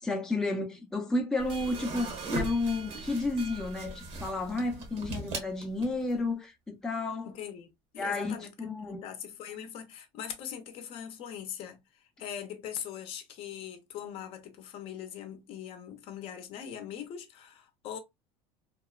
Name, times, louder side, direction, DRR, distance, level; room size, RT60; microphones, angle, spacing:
voice 1, 0.0-7.3 8.0-9.0, left 2 dB, 5° left, 0.5 m, -32 dB
sound 1, 1.4-6.2, right 2 dB, 70° right, 1.1 m, -39 dB
sound 2, 1.5-4.7, right 6 dB, 40° right, 0.6 m, -48 dB
voice 2, 7.2-7.7 7.9-18.0, left 9 dB, 50° left, 0.6 m, -41 dB
2.9 x 2.1 x 2.3 m
cardioid pair, 135°, 13 cm